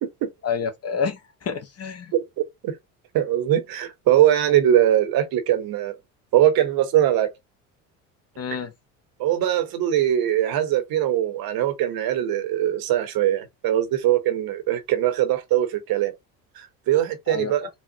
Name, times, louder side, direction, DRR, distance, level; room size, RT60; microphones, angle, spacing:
voice 1, 0.4-2.1 8.4-8.7 17.3-17.7, left 6 dB, 35° left, 0.8 m, -29 dB
voice 2, 2.1-2.8 3.1-5.9 6.3-7.3 8.5-8.6 9.2-16.1 16.6-17.7, right 11 dB, 50° right, 0.9 m, -21 dB
4.1 x 2.0 x 2.7 m
hypercardioid pair, 70°, 45 cm